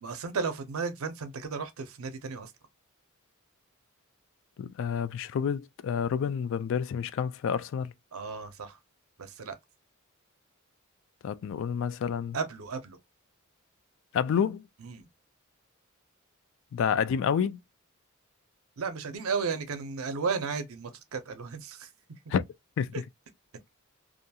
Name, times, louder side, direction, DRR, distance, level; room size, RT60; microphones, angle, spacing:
voice 1, 0.0-2.5 8.1-8.8 9.2-9.6 12.3-13.0 14.8-15.1 18.8-21.9 22.9-23.0, right 5 dB, 85° right, 0.6 m, -34 dB
voice 2, 4.6-7.9 11.2-12.4 14.1-14.6 16.7-17.6 22.3-22.5 22.8-22.9, left 7 dB, 65° left, 0.3 m, -29 dB
2.5 x 2.3 x 2.7 m
head